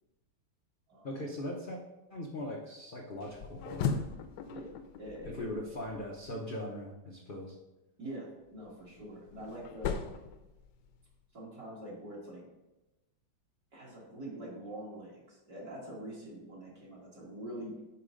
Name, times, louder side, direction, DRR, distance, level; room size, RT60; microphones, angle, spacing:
voice 1, 1.0-1.8 2.1-4.0 5.4-7.6, left 1 dB, 90° left, -2 dB, 0.4 m, -40 dB
sound 1, 3.2-6.4 8.6-11.1, left 6 dB, 70° left, 1.1 m, -38 dB
voice 2, 4.5-5.6 8.0-10.2 11.3-12.4 13.7-17.8, right 1 dB, 50° right, -6 dB, 2.3 m, -44 dB
5.9 x 4.9 x 5.1 m, 1.0 s
omnidirectional pair, 2.1 m